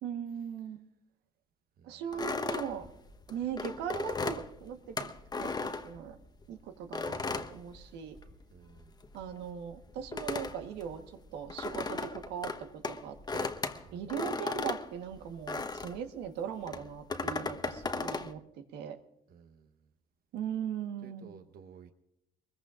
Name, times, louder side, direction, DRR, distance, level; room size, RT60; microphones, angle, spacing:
voice 1, 0.0-0.8 1.8-2.9 3.3-6.2 6.5-8.2 9.1-11.0 11.3-13.5 13.9-19.0 20.3-21.3, right 8 dB, 85° right, 6 dB, 1.4 m, -39 dB
sound 1, 2.1-6.4 6.9-8.4 8.7-16.1 16.6-18.3, left 4 dB, 25° left, 1.1 m, -36 dB
voice 2, 8.5-8.9 13.8-14.0 19.3-19.9 21.0-21.9, right 7 dB, 65° right, 7 dB, 1.0 m, -54 dB
22.5 x 21.0 x 2.5 m, 0.84 s
cardioid pair, 110°, 17 cm